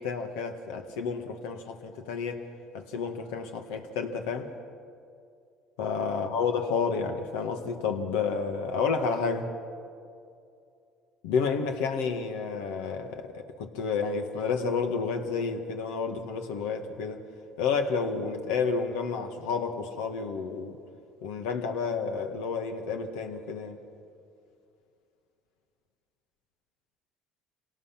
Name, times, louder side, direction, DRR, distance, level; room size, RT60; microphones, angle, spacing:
voice 1, 0.0-2.4 2.7-4.5 5.8-9.5 11.2-17.2 17.6-20.8 21.2-23.8, left 5 dB, 90° left, 1.8 m, -30 dB
25.5 x 18.5 x 6.0 m
supercardioid pair, 100°, 0 cm